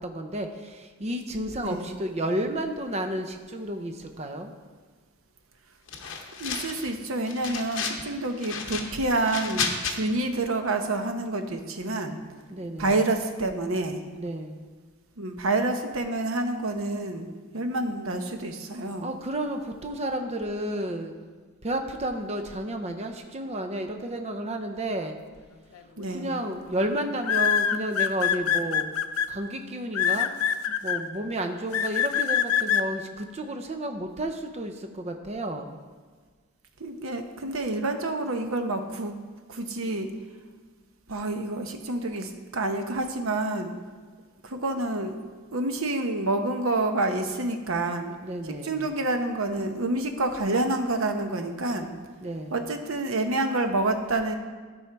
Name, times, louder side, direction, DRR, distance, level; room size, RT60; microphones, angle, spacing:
voice 1, 0.0-4.5 12.5-12.9 14.2-14.7 18.8-21.2 21.6-25.2 26.1-28.9 29.3-30.3 30.7-35.8 48.2-48.9 52.2-52.6, right 1 dB, 30° right, 6 dB, 0.6 m, -32 dB
voice 2, 1.6-1.9 6.4-12.2 12.8-14.0 15.2-17.3 17.5-19.1 26.0-26.3 36.8-39.2 39.5-40.1 41.1-43.7 44.4-45.1 45.5-48.1 48.4-51.9 52.5-54.4, right 2 dB, 75° right, 6 dB, 0.9 m, -28 dB
sound 1, 5.9-6.9 7.2-8.0 8.4-9.9, left 6 dB, 60° left, 0.9 m, -32 dB
sound 2, 25.7-26.0 27.2-29.3 29.9-31.0 31.7-32.8, left 9 dB, 90° left, 0.5 m, -24 dB
12.5 x 5.5 x 4.6 m, 1.5 s
head